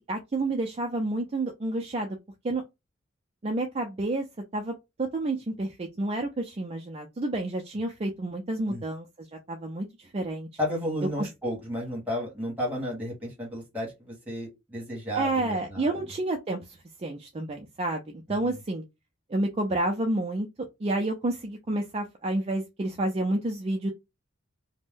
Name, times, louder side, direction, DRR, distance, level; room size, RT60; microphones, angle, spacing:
voice 1, 0.1-2.2 2.4-2.6 3.4-4.2 4.5-10.5 11.2-11.3 15.2-16.6 17.0-18.0 18.3-18.8 19.3-20.5 20.8-23.9, right 2 dB, 30° right, 0.4 m, -29 dB
voice 2, 10.6-16.0 18.4-18.6, equal, 10° right, 1.3 m, -33 dB
2.6 x 2.1 x 3.5 m
head